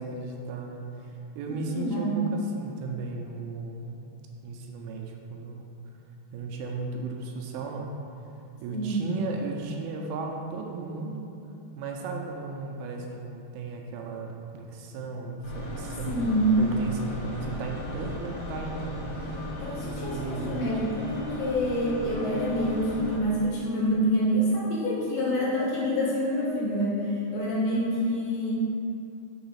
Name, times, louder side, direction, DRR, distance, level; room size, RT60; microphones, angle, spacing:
voice 1, 0.0-4.0 4.4-5.7 6.3-7.9 8.6-11.3 11.8-19.0 19.8-20.6, right 4 dB, 85° right, 1 dB, 2.3 m, -35 dB
voice 2, 1.5-2.3 8.7-9.1 16.1-16.5 19.6-28.5, equal, 75° left, -5 dB, 2.2 m, -27 dB
sound 1, 15.4-23.2, left 2 dB, 55° left, 2.4 m, -36 dB
5.9 x 3.9 x 5.6 m, 2.7 s
omnidirectional pair, 4.7 m